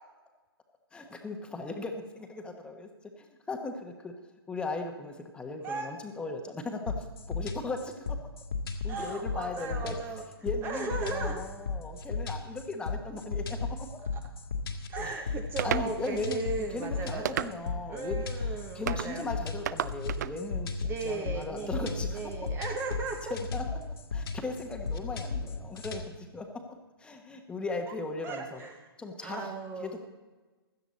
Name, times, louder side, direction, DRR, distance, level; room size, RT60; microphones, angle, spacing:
voice 1, 0.9-2.9 3.2-4.1 4.5-8.2 8.8-9.9 10.4-13.9 15.0-15.2 15.6-22.2 23.3-23.8 24.1-28.6 29.0-29.5 29.8-30.0, left 3 dB, 5° left, 4 dB, 1.1 m, -38 dB
sound 1, 6.9-26.1, left 4 dB, 65° left, 2.0 m, -35 dB
voice 2, 8.9-10.2 10.6-11.4 14.1-14.2 14.9-17.5 17.9-19.3 20.8-23.3 27.9-28.0 28.2-28.9 29.2-30.0, right 4 dB, 15° right, 5 dB, 0.9 m, -36 dB
sound 2, 15.6-15.9 17.2-17.8 18.9-19.1 19.6-20.4, right 10 dB, 45° right, 0.5 m, -32 dB
16.5 x 12.5 x 4.1 m, 1.3 s
figure-of-eight pair, 130°, 13 cm